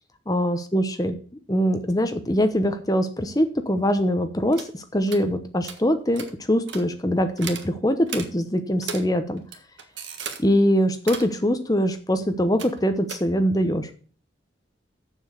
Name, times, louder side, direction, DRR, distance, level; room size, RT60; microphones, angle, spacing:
voice 1, 0.3-1.2 1.5-9.4 10.4-13.9, equal, 20° left, 9 dB, 0.9 m, -23 dB
sound 1, 4.5-4.7 5.1-5.2 5.6-5.8 6.1-6.3 6.7-6.8 7.4-7.7 8.1-8.3 8.8-9.1 9.4-10.4 11.0-11.3 12.6-12.8 13.1-13.2, right 6 dB, 75° right, 1.5 m, -35 dB
7.3 x 7.1 x 6.5 m, 0.40 s
head